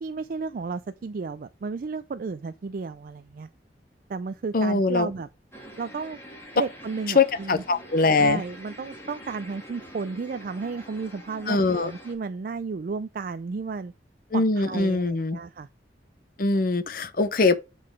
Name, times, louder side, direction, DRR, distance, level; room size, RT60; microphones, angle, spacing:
voice 1, 0.0-3.5 4.1-5.3 5.8-6.2 6.5-7.6 8.2-13.9 14.3-15.7, right 4 dB, 50° right, 0.4 m, -33 dB
voice 2, 4.5-5.1 7.1-8.4 11.5-11.9 14.3-15.4 16.4-17.6, left 3 dB, 55° left, 0.7 m, -22 dB
sound 1, 5.5-12.1, equal, 15° left, 2.2 m, -45 dB
7.6 x 3.9 x 4.8 m
head